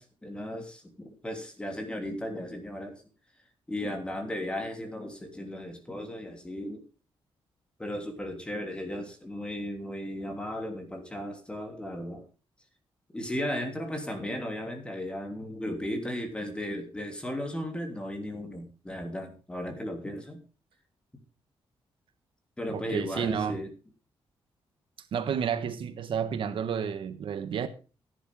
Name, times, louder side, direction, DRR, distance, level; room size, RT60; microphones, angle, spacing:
voice 1, 0.0-3.0 3.7-6.8 7.8-12.2 13.1-20.4 22.6-23.7, left 1 dB, 10° left, 3.1 m, -35 dB
voice 2, 22.7-23.6 25.1-27.7, right 7 dB, 65° right, 1.3 m, -31 dB
15.5 x 10.5 x 3.6 m
wide cardioid pair, 160°, 9 cm